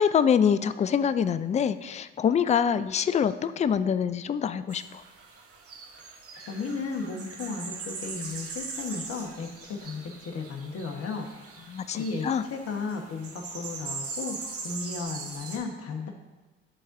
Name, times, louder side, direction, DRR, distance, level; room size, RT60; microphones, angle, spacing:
voice 1, 0.0-5.0 11.7-12.0 12.2-12.4, left 7 dB, 25° left, 13 dB, 0.4 m, -25 dB
sound 1, 4.7-15.6, right 4 dB, 50° right, 1.1 m, -41 dB
voice 2, 6.5-11.3 11.9-14.4 14.6-16.1, left 4 dB, 55° left, 3 dB, 1.3 m, -34 dB
11.0 x 3.9 x 2.6 m, 1.2 s
hypercardioid pair, 55°, 29 cm